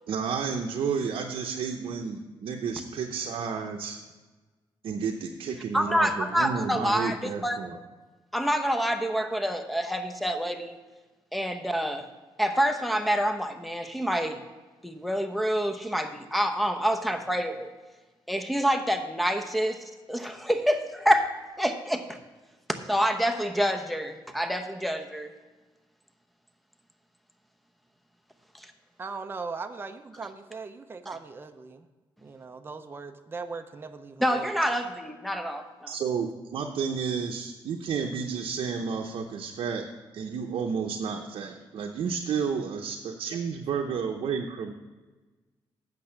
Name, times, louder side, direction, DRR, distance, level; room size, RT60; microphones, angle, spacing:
voice 1, 0.1-4.0 4.8-7.8 35.9-39.9 40.1-44.7, right 6 dB, 75° right, 2 dB, 0.7 m, -31 dB
voice 2, 5.7-7.7 8.3-10.8 11.3-12.1 12.4-14.4 14.8-17.7 18.3-22.2 22.7-25.3 28.5-28.7 34.2-35.9, equal, ahead, 6 dB, 0.8 m, -27 dB
voice 3, 29.0-31.9 32.2-34.5, right 4 dB, 25° right, 7 dB, 0.6 m, -39 dB
8.5 x 6.6 x 5.7 m, 1.3 s
cardioid pair, 105°, 9 cm